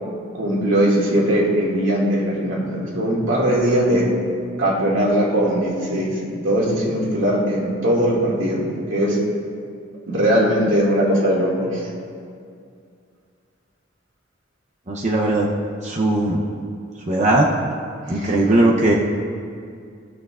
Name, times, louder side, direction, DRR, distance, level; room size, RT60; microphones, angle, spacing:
voice 1, 0.4-4.1 4.6-9.2 10.1-11.9 18.1-18.3, equal, 90° right, -4 dB, 2.2 m, -20 dB
voice 2, 14.9-15.5 15.8-16.4 17.1-17.5 18.1-18.9, right 2 dB, 35° right, -2 dB, 0.7 m, -18 dB
16.5 x 6.4 x 2.4 m, 2.3 s
head